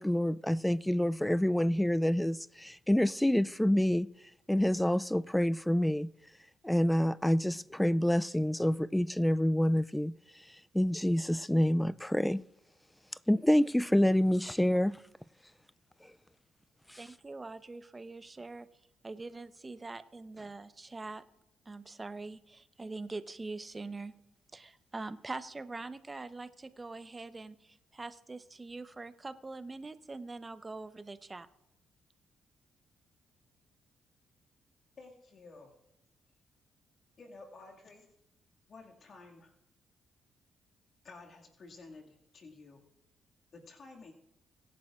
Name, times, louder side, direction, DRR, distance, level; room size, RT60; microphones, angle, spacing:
voice 1, 0.0-4.1 4.5-6.1 6.6-12.4 13.3-15.0 16.0-16.1 16.9-17.0, left 1 dB, 5° left, 0.3 m, -27 dB
voice 2, 17.0-18.7 19.0-21.2 21.7-24.1 24.5-31.5, right 3 dB, 25° right, 0.9 m, -43 dB
voice 3, 35.0-35.8 37.2-38.1 38.7-39.5 41.0-42.8 43.5-44.1, left 3 dB, 55° left, 2.1 m, -52 dB
24.5 x 10.5 x 2.5 m
hypercardioid pair, 50°, 0 cm